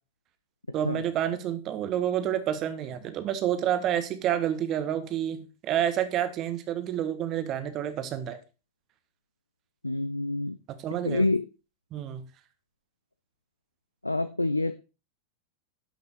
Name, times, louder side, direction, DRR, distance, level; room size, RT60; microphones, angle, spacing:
voice 1, 0.7-8.4 10.7-11.3 11.9-12.2, right 10 dB, 35° right, 1.5 m, -29 dB
voice 2, 9.8-10.6 11.1-11.4 14.0-14.8, left 2 dB, 85° left, 0.5 m, -27 dB
11.5 x 6.0 x 4.6 m
figure-of-eight pair, 90°, 0 cm